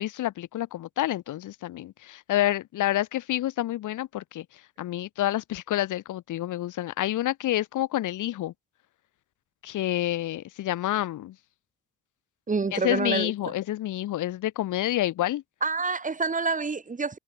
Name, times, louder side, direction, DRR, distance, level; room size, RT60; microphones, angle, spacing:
voice 1, 0.0-4.5 4.8-8.5 9.6-11.4 12.7-15.4, left 14 dB, 80° left, 4.1 m, -28 dB
voice 2, 12.5-13.3 15.6-17.2, right 4 dB, 25° right, 1.7 m, -27 dB
cardioid pair, 90°, 30 cm